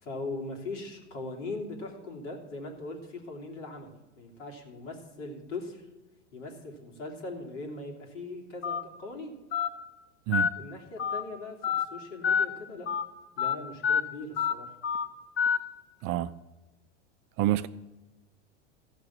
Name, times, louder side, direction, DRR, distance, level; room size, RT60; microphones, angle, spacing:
voice 1, 0.0-5.9 6.3-9.3 10.6-12.9 13.4-14.7, left 2 dB, 75° left, 3.2 m, -40 dB
Telephone, 8.6-8.8 9.5-9.7 10.3-10.5 11.0-11.2 11.6-11.8 12.2-12.5 12.9-13.0 13.4-13.5 13.8-14.0 14.4-14.5 14.8-15.0 15.4-15.6, left 7 dB, 35° left, 1.2 m, -26 dB
voice 2, 16.0-16.3 17.4-17.7, right 14 dB, 40° right, 0.5 m, -27 dB
14.5 x 6.2 x 7.2 m
hypercardioid pair, 105°, 37 cm